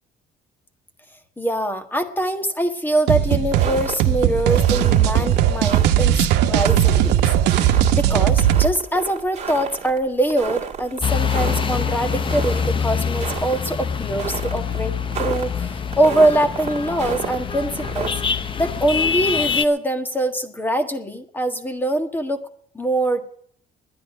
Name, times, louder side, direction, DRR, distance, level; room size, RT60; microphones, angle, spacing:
voice 1, 1.4-7.2 7.5-14.9 15.2-22.4 22.7-23.2, right 1 dB, 10° left, 7 dB, 1.6 m, -23 dB
sound 1, 3.1-8.7, right 11 dB, 85° right, 1.0 m, -18 dB
sound 2, 3.5-18.1, right 7 dB, 40° right, 2.0 m, -32 dB
sound 3, 11.0-19.6, left 6 dB, 30° left, 0.7 m, -25 dB
11.0 x 10.5 x 9.2 m, 0.62 s
cardioid pair, 110°, 17 cm